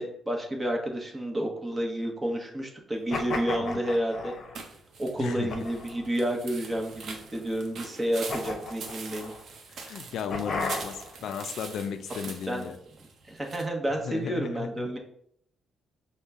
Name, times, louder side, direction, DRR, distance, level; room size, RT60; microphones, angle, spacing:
voice 1, 0.0-4.3 5.0-9.3 12.5-12.7 13.2-15.0, right 1 dB, 20° right, 1 dB, 1.0 m, -30 dB
sound 1, 3.1-4.6 5.5-6.1 6.7-7.4 8.3-9.4 10.3-11.2, left 3 dB, 55° left, 0.7 m, -35 dB
sound 2, 4.5-13.6, right 4 dB, 65° right, 0.7 m, -43 dB
voice 2, 9.7-12.8 14.0-14.9, left 7 dB, 70° left, 9 dB, 0.3 m, -35 dB
5.4 x 2.2 x 3.5 m, 0.69 s
cardioid pair, 90°, 0 cm